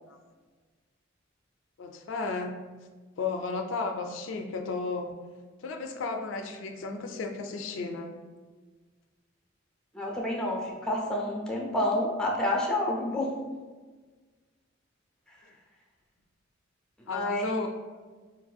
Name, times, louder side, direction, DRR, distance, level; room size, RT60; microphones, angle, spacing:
voice 1, 1.8-2.5 3.2-5.2 5.6-8.1 17.1-17.7, left 4 dB, 70° left, 4 dB, 0.3 m, -33 dB
voice 2, 9.9-13.3 17.1-17.7, left 1 dB, 5° left, -2 dB, 0.5 m, -29 dB
4.1 x 2.5 x 2.3 m, 1.4 s
head